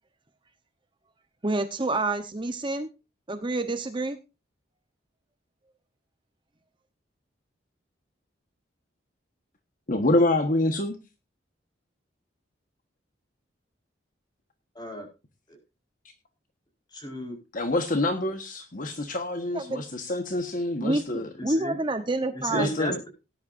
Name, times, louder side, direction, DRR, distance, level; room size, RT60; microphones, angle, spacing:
voice 1, 1.4-2.9 3.3-4.2 19.5-19.8 20.8-22.7, right 2 dB, 25° right, 8 dB, 1.0 m, -28 dB
voice 2, 9.9-11.0 17.5-21.3 22.5-23.0, left 2 dB, 45° left, 6 dB, 1.4 m, -26 dB
voice 3, 14.7-15.1 15.5-15.6 16.9-17.4 21.4-21.8 22.3-23.1, right 1 dB, 25° left, 3 dB, 4.9 m, -34 dB
18.5 x 10.5 x 2.6 m, 0.28 s
head